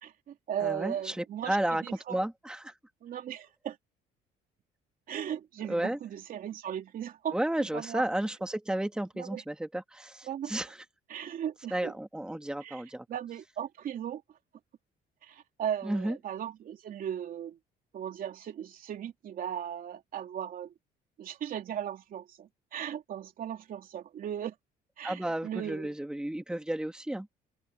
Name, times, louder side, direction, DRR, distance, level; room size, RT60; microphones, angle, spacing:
voice 1, 0.0-2.2 3.0-3.8 5.1-8.0 9.2-9.4 10.2-10.5 11.1-11.9 12.6-12.8 13.1-14.2 15.2-17.6 17.9-20.7 21.2-24.5 25.0-25.9, right 9 dB, 55° right, 3.0 m, -37 dB
voice 2, 0.6-1.8 2.1-2.7 5.7-6.0 7.3-10.8 11.7-13.1 15.8-16.2 25.0-27.3, right 1 dB, 5° right, 1.9 m, -32 dB
open air
cardioid pair, 110°, 17 cm